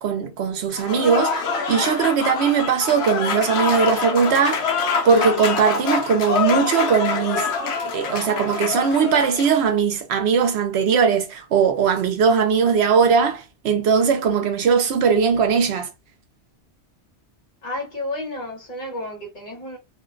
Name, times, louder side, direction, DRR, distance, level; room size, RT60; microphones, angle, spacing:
voice 1, 0.0-4.7 5.0-7.5 7.9-15.9, right 6 dB, 75° right, 0.8 m, -20 dB
Applause / Crowd, 0.7-9.6, left 5 dB, 80° left, 0.9 m, -25 dB
voice 2, 17.6-19.8, left 1 dB, 45° left, 1.0 m, -31 dB
2.4 x 2.2 x 2.4 m
omnidirectional pair, 1.1 m